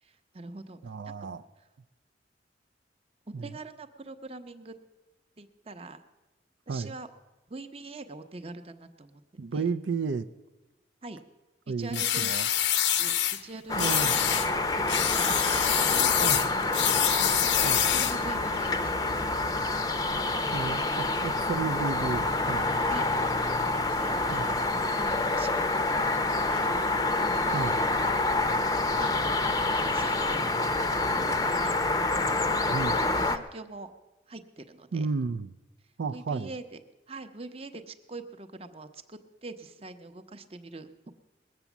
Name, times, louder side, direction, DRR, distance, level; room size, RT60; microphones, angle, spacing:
voice 1, 0.0-0.8 1.0-1.1 3.3-4.7 5.4-6.0 6.7-7.1 7.5-9.2 9.5-9.7 11.0-11.2 11.7-12.5 13.0-16.5 17.8-19.0 22.9-23.1 23.9-26.1 26.5-26.7 28.4-28.6 29.0-29.1 29.4-29.5 29.9-30.5 31.1-32.1 32.4-33.9 34.3-35.1 36.1-36.8 37.1-40.9, right 3 dB, 30° right, 8 dB, 0.8 m, -43 dB
voice 2, 0.8-1.4 3.3-3.5 6.7-6.9 9.4-10.3 11.7-12.5 13.7-14.1 16.2-16.4 17.6-17.9 20.5-22.7 24.3-24.4 27.5-27.8 32.7-32.9 34.9-35.6 36.0-36.5, right 4 dB, 75° right, 9 dB, 0.4 m, -32 dB
sound 1, 11.9-13.4 13.8-14.5 14.9-18.2, left 10 dB, 80° left, 0.7 m, -26 dB
sound 2, 13.7-33.4, left 2 dB, 20° left, 0.6 m, -27 dB
20.5 x 8.1 x 7.1 m, 1.1 s
head